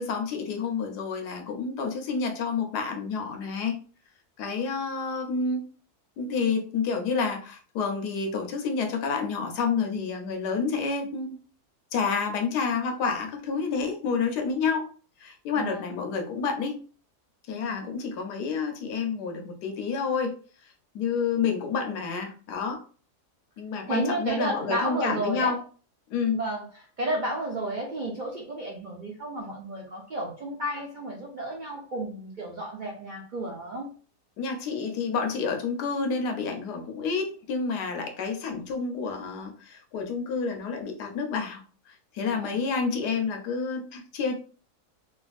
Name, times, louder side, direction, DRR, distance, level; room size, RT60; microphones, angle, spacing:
voice 1, 0.0-3.8 4.4-5.6 6.2-11.4 11.9-14.9 15.2-16.8 17.5-20.4 20.9-22.8 23.6-25.6 26.1-26.4 34.4-41.6 41.9-44.3, left 5 dB, 90° left, 4 dB, 1.3 m, -29 dB
voice 2, 15.6-15.9 17.5-17.9 23.9-25.5 26.3-33.9 42.3-42.6, right 1 dB, 90° right, -1 dB, 0.4 m, -32 dB
3.3 x 2.4 x 2.4 m, 0.39 s
omnidirectional pair, 1.7 m